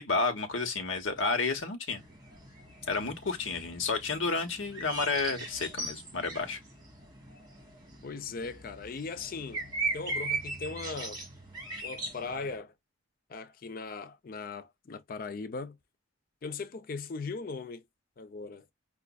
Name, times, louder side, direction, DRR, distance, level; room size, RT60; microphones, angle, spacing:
voice 1, 0.0-2.0 2.9-6.6, left 4 dB, 75° left, 1.0 m, -31 dB
sound 1, 2.0-12.6, right 2 dB, 20° right, 1.7 m, -39 dB
voice 2, 8.0-9.6 9.9-11.2 11.8-12.7 13.3-15.8 16.4-17.8 18.2-18.7, left 4 dB, 45° left, 0.4 m, -39 dB
5.0 x 2.4 x 2.2 m
head